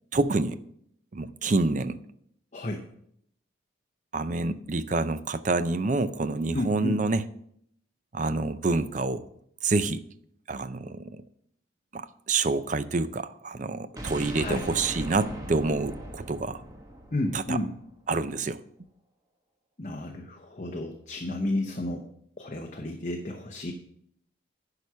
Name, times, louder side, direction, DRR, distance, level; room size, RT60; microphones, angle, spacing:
voice 1, 0.1-0.6 1.1-2.0 4.1-7.2 8.1-9.3 9.6-10.0 10.5-11.2 11.9-16.6 17.3-17.6 18.1-18.6, right 3 dB, 40° right, 13 dB, 0.5 m, -27 dB
voice 2, 2.5-2.8 6.5-7.0 14.3-14.7 17.1-17.7 19.8-22.0 22.4-23.7, left 1 dB, 35° left, 2 dB, 0.8 m, -31 dB
sound 1, 14.0-17.9, equal, 20° right, 1.1 m, -39 dB
10.5 x 4.9 x 5.6 m, 0.69 s
head